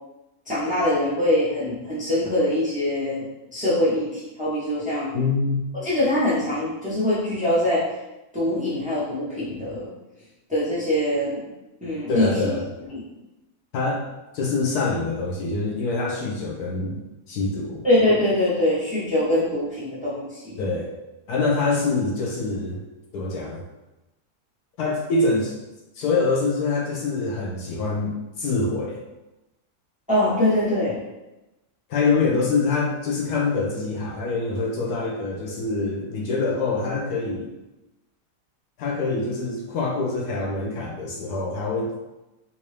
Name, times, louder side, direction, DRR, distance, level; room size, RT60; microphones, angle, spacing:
voice 1, 0.5-3.2 3.5-5.1 5.8-7.9 8.3-9.9 10.5-11.4 11.8-12.5 12.9-13.0 17.8-20.6 30.1-31.0, left 1 dB, 5° right, -10 dB, 0.8 m, -23 dB
voice 2, 5.1-5.7 12.1-12.7 13.7-14.0 14.3-17.0 17.3-17.8 20.6-20.9 21.3-22.8 23.1-23.6 24.8-25.5 26.0-29.0 31.9-37.5 38.8-41.9, left 3 dB, 75° left, -2 dB, 1.1 m, -25 dB
3.8 x 2.6 x 3.2 m, 1.0 s
omnidirectional pair, 1.8 m